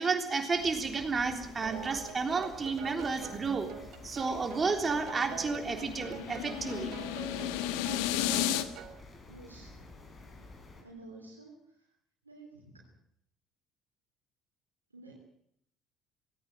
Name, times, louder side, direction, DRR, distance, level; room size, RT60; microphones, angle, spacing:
voice 1, 0.0-3.7 4.0-6.9, right 4 dB, 30° right, 5 dB, 3.5 m, -31 dB
sound 1, 0.5-10.8, left 2 dB, 30° left, 5.8 m, -51 dB
sound 2, 1.6-9.0, right 9 dB, 55° right, 1.6 m, -46 dB
sound 3, 4.3-8.6, left 12 dB, 65° left, 1.3 m, -34 dB
voice 2, 9.3-9.8 10.8-11.6 12.2-12.9 14.9-15.1, right 2 dB, 85° right, -1 dB, 3.2 m, -50 dB
18.5 x 17.0 x 9.0 m, 0.73 s
figure-of-eight pair, 55°, 0 cm